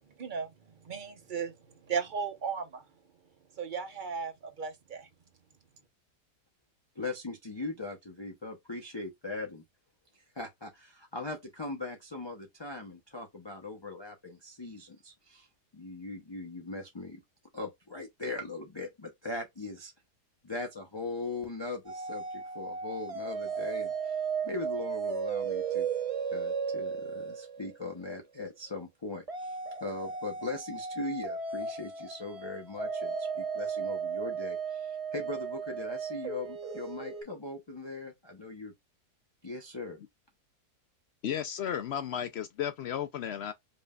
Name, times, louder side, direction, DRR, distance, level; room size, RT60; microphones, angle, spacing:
voice 1, 0.2-0.5 0.8-1.5 1.8-2.8 3.6-5.1, right 6 dB, 40° right, 0.7 m, -35 dB
voice 2, 7.0-9.6 10.1-15.5 15.7-17.2 17.5-19.9 20.4-25.9 26.3-38.7 39.4-40.0, left 2 dB, 25° left, 0.5 m, -40 dB
sound 1, 21.9-28.1 29.3-37.2, right 6 dB, 60° right, 0.3 m, -35 dB
voice 3, 41.2-43.5, left 9 dB, 85° left, 0.5 m, -34 dB
5.3 x 3.1 x 2.3 m
omnidirectional pair, 1.8 m